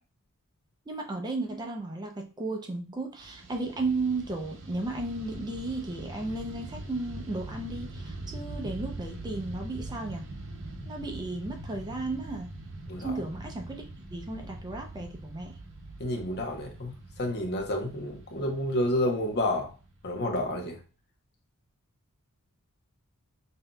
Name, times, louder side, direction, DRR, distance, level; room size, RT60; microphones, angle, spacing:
voice 1, 0.9-10.2 10.8-12.5 13.0-13.8 14.1-15.6, right 2 dB, 20° right, 0.5 m, -34 dB
Fixed-wing aircraft airplane, 3.2-20.6, right 2 dB, 55° right, 0.7 m, -43 dB
voice 2, 16.0-19.7 20.0-20.8, left 1 dB, 50° left, 0.8 m, -30 dB
5.5 x 2.7 x 2.3 m
head